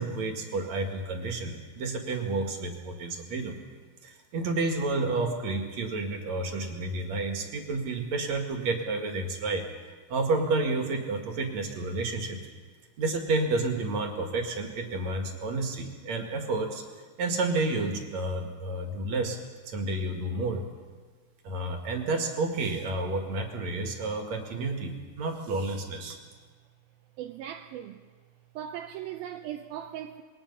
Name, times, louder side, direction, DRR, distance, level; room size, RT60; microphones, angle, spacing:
voice 1, 0.0-3.6 4.0-9.6 10.1-12.4 13.0-16.8 17.2-19.4 19.7-20.6 21.4-26.2, right 3 dB, 50° right, 2.9 m, -30 dB
voice 2, 27.2-28.0 28.6-30.2, right 10 dB, 80° right, 2.5 m, -38 dB
27.0 x 21.5 x 5.7 m
omnidirectional pair, 4.4 m